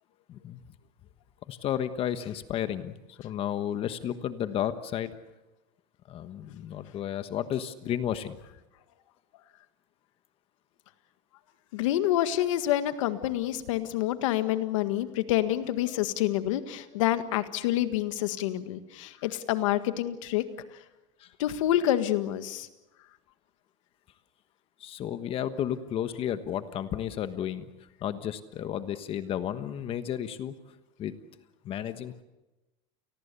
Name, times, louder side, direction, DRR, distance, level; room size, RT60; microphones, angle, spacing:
voice 1, 0.3-0.6 1.5-5.1 6.1-8.4 21.2-21.3 24.8-27.7 28.0-30.5 31.0-31.1 31.6-32.2, left 10 dB, 35° left, 11 dB, 1.3 m, -32 dB
voice 2, 11.7-20.4 21.4-22.7, left 13 dB, 90° left, 10 dB, 1.8 m, -27 dB
29.0 x 20.0 x 7.0 m, 1.0 s
supercardioid pair, 145°, 16 cm